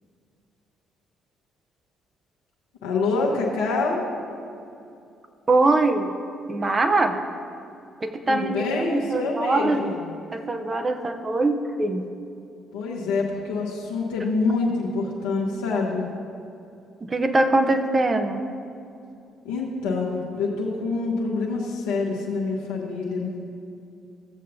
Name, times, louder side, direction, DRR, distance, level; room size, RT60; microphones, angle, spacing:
voice 1, 2.8-4.0 8.3-10.1 12.7-16.0 19.4-23.5, left 3 dB, 80° left, -4 dB, 1.0 m, -26 dB
voice 2, 5.5-6.1 6.5-7.2 8.0-9.8 10.3-12.0 17.1-18.4, right 2 dB, 30° right, 7 dB, 0.7 m, -22 dB
15.0 x 7.4 x 2.7 m, 2.6 s
hypercardioid pair, 45°, 0 cm